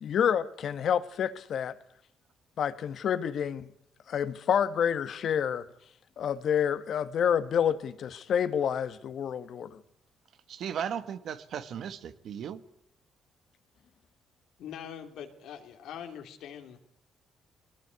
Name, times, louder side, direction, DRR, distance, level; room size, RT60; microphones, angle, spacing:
voice 1, 0.0-1.8 2.6-3.7 4.1-5.7 6.2-9.8, left 8 dB, 65° left, 1.4 m, -28 dB
voice 2, 10.5-12.6, right 8 dB, 70° right, 1.5 m, -36 dB
voice 3, 14.6-16.8, left 9 dB, 85° left, 3.1 m, -43 dB
21.0 x 19.0 x 9.5 m
cardioid pair, 90°, 0 cm